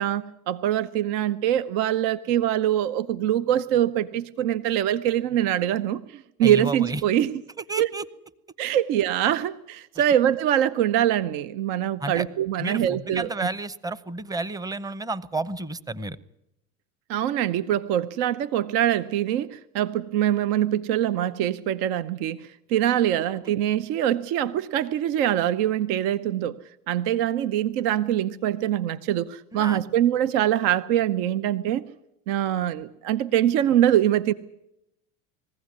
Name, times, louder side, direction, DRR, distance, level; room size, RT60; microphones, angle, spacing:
voice 1, 0.0-7.3 7.8-7.9 8.6-13.5 17.1-26.6 26.9-31.8 32.3-34.3, right 11 dB, 65° right, 13 dB, 0.9 m, -24 dB
voice 2, 6.4-7.0 7.7-8.0 10.0-10.1 12.0-12.3 12.6-16.2 29.5-29.8, right 2 dB, 10° right, 16 dB, 0.8 m, -31 dB
21.0 x 15.5 x 9.6 m, 0.85 s
hypercardioid pair, 95°, 42 cm